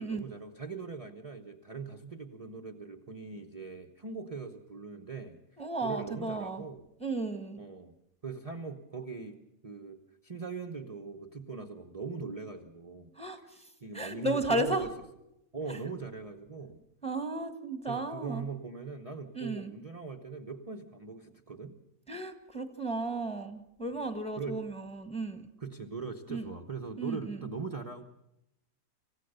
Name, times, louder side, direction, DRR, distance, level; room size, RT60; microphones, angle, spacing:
voice 1, 0.0-5.4 5.8-6.8 7.6-7.9 8.2-13.5 13.8-14.9 15.5-16.8 17.9-21.8 24.4-24.7 25.6-28.0, right 4 dB, 30° right, 3 dB, 1.0 m, -41 dB
voice 2, 5.6-6.6 7.0-7.6 13.2-13.7 13.9-14.9 15.7-15.8 17.0-18.5 19.3-19.7 22.1-25.5 26.3-26.4 27.0-27.4, right 2 dB, 5° left, 8 dB, 1.5 m, -34 dB
27.5 x 15.5 x 6.7 m, 0.86 s
omnidirectional pair, 1.5 m